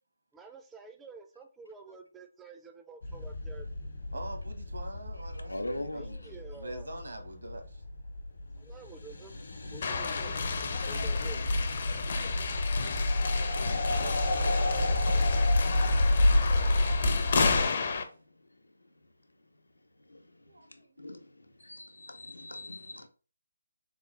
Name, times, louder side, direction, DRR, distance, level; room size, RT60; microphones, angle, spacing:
voice 1, 0.3-3.7 5.9-6.9 8.6-9.3 9.7-10.3 10.8-11.5, right 4 dB, 10° right, 0.3 m, -49 dB
sound 1, 3.0-17.7, left 1 dB, 65° left, 0.9 m, -29 dB
voice 2, 4.1-7.8 20.4-21.0, right 1 dB, 75° right, 1.1 m, -44 dB
voice 3, 5.5-6.2 11.8-12.0 12.3-12.5 20.1-20.2 21.0-21.2 21.6-23.1, left 1 dB, 90° left, 0.6 m, -40 dB
sound 2, 9.8-18.0, left 5 dB, 45° left, 0.5 m, -32 dB
sound 3, 12.8-18.2, right 2 dB, 60° right, 0.6 m, -50 dB
3.8 x 2.4 x 3.2 m
figure-of-eight pair, 155°, 0 cm